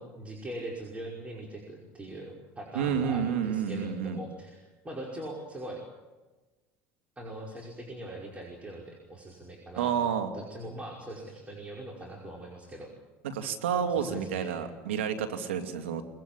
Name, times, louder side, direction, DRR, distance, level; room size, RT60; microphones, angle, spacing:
voice 1, 0.2-5.8 7.2-9.9 10.3-12.9 13.9-14.5, right 1 dB, 20° right, -1 dB, 5.4 m, -41 dB
voice 2, 2.7-4.2 9.8-10.3 13.2-16.0, right 8 dB, 90° right, 6 dB, 2.5 m, -30 dB
22.5 x 21.0 x 8.9 m, 1.2 s
hypercardioid pair, 85°, 6 cm